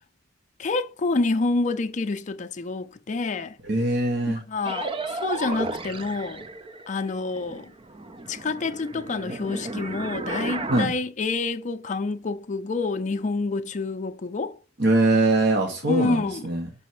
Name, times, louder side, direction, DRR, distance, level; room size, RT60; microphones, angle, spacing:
voice 1, 0.6-3.6 4.3-6.5 6.9-7.7 8.3-14.6 15.8-16.5, left 3 dB, 40° left, 0.5 m, -28 dB
voice 2, 3.7-4.4 10.7-10.9 14.8-16.7, right 2 dB, 60° right, 1.2 m, -22 dB
sound 1, 4.6-7.1 7.3-10.9, right 2 dB, 30° right, 0.5 m, -33 dB
5.7 x 4.1 x 6.0 m
head